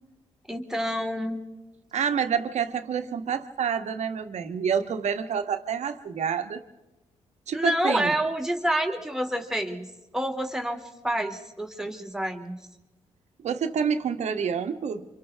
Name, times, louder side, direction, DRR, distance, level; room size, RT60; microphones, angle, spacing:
voice 1, 0.5-1.4 7.5-9.9 10.1-12.6, right 1 dB, 5° right, 3 dB, 2.8 m, -28 dB
voice 2, 1.9-6.6 7.5-8.1 13.4-15.1, right 7 dB, 65° right, 7 dB, 1.6 m, -28 dB
29.0 x 25.5 x 3.6 m, 1.0 s
supercardioid pair, 60°, 13 cm